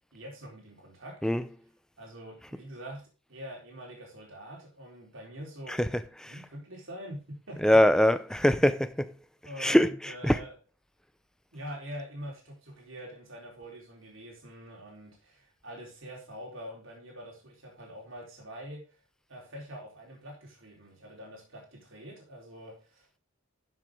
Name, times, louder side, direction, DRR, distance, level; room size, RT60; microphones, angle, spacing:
voice 1, 0.1-1.2 2.0-3.0 3.3-5.8 6.3-7.6 8.3-8.6 9.4-10.5 11.5-18.8 19.3-23.2, equal, 65° right, 4.1 m, -44 dB
voice 2, 1.2-1.6 5.7-6.4 7.6-9.1 9.4-10.4, left 1 dB, 5° left, 0.5 m, -24 dB
11.5 x 7.7 x 3.7 m
head